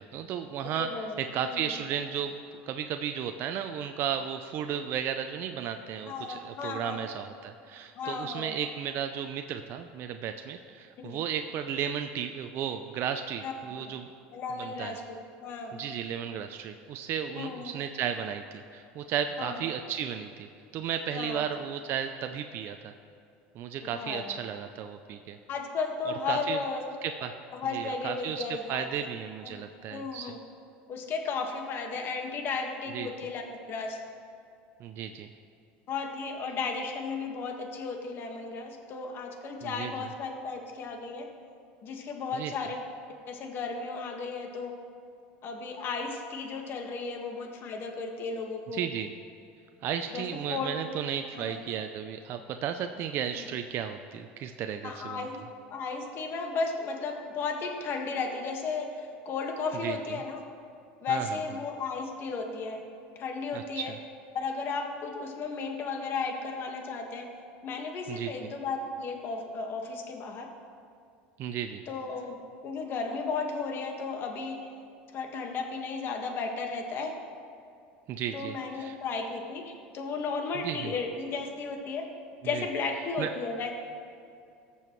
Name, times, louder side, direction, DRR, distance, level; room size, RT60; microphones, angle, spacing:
voice 1, 0.0-1.1 1.3-2.3 2.7-14.1 14.6-15.0 15.7-20.5 20.7-22.9 23.6-25.4 26.1-26.6 27.0-27.3 27.7-28.4 28.7-30.3 32.9-33.1 34.8-35.3 39.6-39.9 42.3-42.5 48.7-49.1 49.8-55.3 59.8-60.0 61.1-61.3 63.5-64.0 68.1-68.5 71.4-71.8 78.1-79.0 80.6-80.9 82.5-82.6 83.2-83.3, right 8 dB, 50° right, 7 dB, 0.5 m, -34 dB
voice 2, 0.8-1.7 6.0-7.2 8.0-8.5 11.0-11.2 13.4-13.8 14.3-15.9 17.3-17.8 19.4-19.6 21.1-21.4 23.9-24.4 25.5-26.8 27.5-28.8 29.4-29.6 29.9-30.4 30.9-33.4 33.7-34.0 35.9-41.3 41.8-42.8 43.3-44.7 45.4-48.8 50.1-50.7 51.3-51.6 53.4-53.5 54.8-55.4 55.7-60.4 61.0-62.8 63.2-63.9 64.3-67.3 67.6-70.5 71.9-72.4 72.6-74.6 75.1-77.1 78.3-82.1 82.4-83.7, left 4 dB, 45° left, 2 dB, 1.7 m, -34 dB
20.0 x 7.0 x 3.2 m, 2.5 s
supercardioid pair, 100°, 5 cm